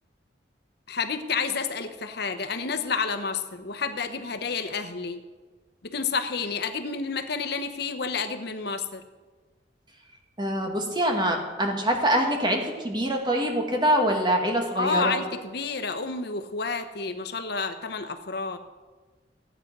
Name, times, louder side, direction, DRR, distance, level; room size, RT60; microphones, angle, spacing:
voice 1, 0.9-5.2 5.8-9.0 14.7-18.6, left 4 dB, 60° left, 8 dB, 0.9 m, -30 dB
voice 2, 10.4-15.2, right 1 dB, 25° right, 2 dB, 2.0 m, -24 dB
15.0 x 9.3 x 6.1 m, 1.3 s
head